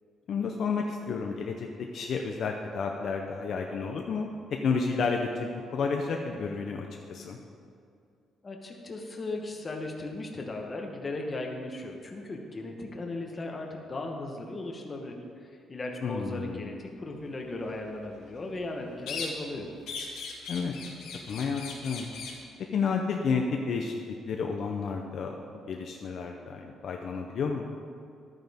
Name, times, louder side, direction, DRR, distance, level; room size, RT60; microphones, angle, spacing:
voice 1, 0.3-1.7 1.9-4.3 4.6-7.4 16.0-16.8 20.5-20.7 21.3-22.1 22.7-24.0 24.2-25.4 25.7-27.7, left 5 dB, 45° left, 2 dB, 0.6 m, -31 dB
voice 2, 8.4-15.2 15.4-19.7, left 2 dB, 20° left, 2 dB, 1.0 m, -37 dB
sound 1, 19.1-19.6 19.9-22.4, left 4 dB, 80° left, 1.9 m, -39 dB
13.0 x 9.3 x 3.5 m, 2.4 s
cardioid pair, 180°, 0 cm